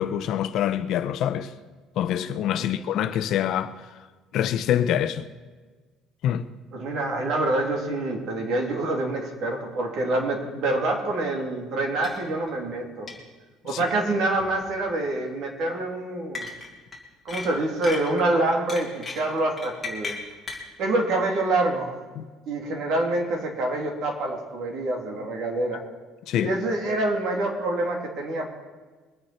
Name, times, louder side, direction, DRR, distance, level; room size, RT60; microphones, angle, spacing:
voice 1, 0.0-1.5 2.0-3.8 4.3-5.3 6.2-6.4 13.7-13.8 22.2-22.3 26.3-26.5, left 10 dB, 55° left, 0.7 m, -25 dB
voice 2, 6.7-13.1 13.6-16.5 17.2-20.1 20.8-21.9 22.5-25.8 26.4-28.5, right 2 dB, 55° right, 3.0 m, -26 dB
sound 1, 12.0-12.2 12.5-12.6 13.1-13.2 14.4-14.7 16.4-17.0 17.3-18.2 18.7-20.7, left 4 dB, 15° left, 2.5 m, -35 dB
22.5 x 9.5 x 4.4 m
cardioid pair, 150°, 0 cm